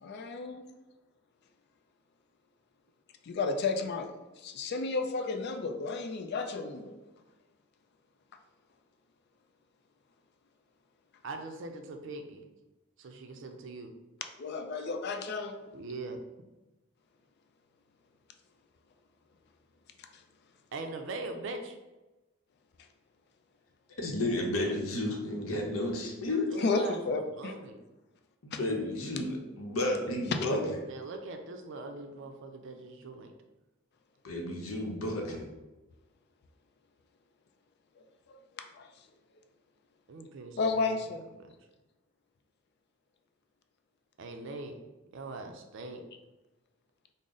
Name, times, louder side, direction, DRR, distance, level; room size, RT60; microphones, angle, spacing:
voice 1, 0.0-0.6 3.3-4.1 4.4-6.9 14.4-15.6 26.6-27.5 28.5-28.6 38.3-38.4 38.8-38.9 40.6-41.3, left 3 dB, 50° left, 6 dB, 0.4 m, -32 dB
voice 2, 11.2-12.4 13.0-13.9 15.7-16.2 20.7-21.8 26.5-27.8 30.8-33.3 40.1-40.9 41.4-41.5 44.2-44.8 45.1-46.0, right 2 dB, 60° right, 5 dB, 0.4 m, -41 dB
voice 3, 24.0-26.5 28.4-30.8 34.2-35.5, left 1 dB, 80° left, 1 dB, 0.7 m, -32 dB
3.9 x 2.0 x 3.6 m, 1.1 s
head